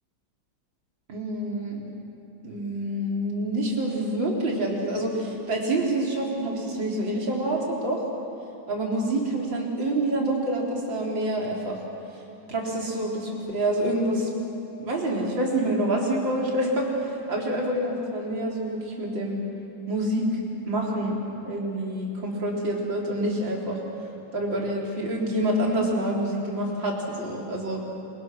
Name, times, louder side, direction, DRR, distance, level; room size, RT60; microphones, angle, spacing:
voice 1, 1.1-1.8 2.4-8.0 8.7-11.8 12.5-14.3 14.8-19.4 19.9-23.8 24.3-27.8, right 1 dB, 65° right, -2 dB, 4.6 m, -27 dB
27.5 x 24.5 x 6.3 m, 2.6 s
omnidirectional pair, 2.2 m